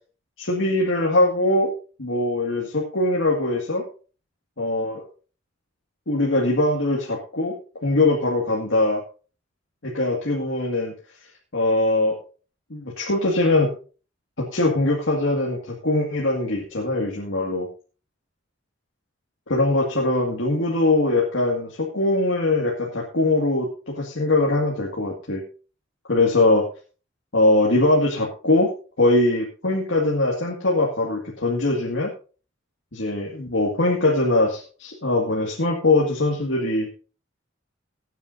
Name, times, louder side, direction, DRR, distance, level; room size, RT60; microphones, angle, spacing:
voice 1, 0.4-1.7 2.0-3.9 4.6-5.0 6.1-7.6 7.8-9.0 9.8-10.9 11.5-12.2 12.7-13.7 14.4-17.7 19.5-25.4 26.1-26.7 27.3-28.7 29.0-32.1 32.9-36.9, left 2 dB, 80° left, -2 dB, 2.0 m, -21 dB
20.0 x 9.1 x 2.7 m, 0.36 s
head